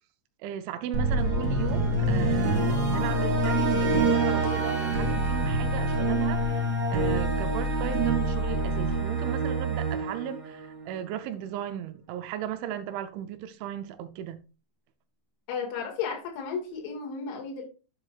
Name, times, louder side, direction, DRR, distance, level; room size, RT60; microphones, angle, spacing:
voice 1, 0.4-14.4, right 10 dB, 80° right, 2.9 m, -36 dB
sound 1, 0.9-11.1, right 2 dB, 50° right, 1.1 m, -26 dB
Wind instrument woodwind instrument, 4.1-10.2, left 6 dB, 60° left, 2.7 m, -43 dB
voice 2, 15.5-17.6, left 6 dB, 80° left, 4.4 m, -33 dB
9.7 x 7.7 x 2.4 m
omnidirectional pair, 5.5 m